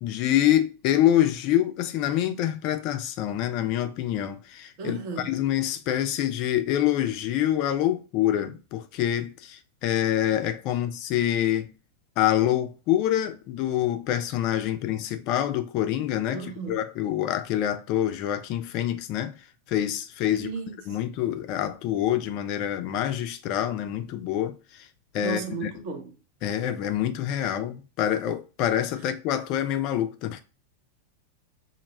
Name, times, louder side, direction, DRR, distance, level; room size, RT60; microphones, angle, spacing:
voice 1, 0.0-11.7 12.2-19.4 19.7-20.5 20.9-24.9 25.1-25.7 26.4-30.4, left 12 dB, 40° left, 0.3 m, -26 dB
voice 2, 4.8-5.4 16.3-16.8 20.3-21.0 25.2-26.2 27.4-27.5, right 4 dB, 45° right, 0.6 m, -35 dB
2.1 x 2.0 x 3.1 m
figure-of-eight pair, 90°, 0 cm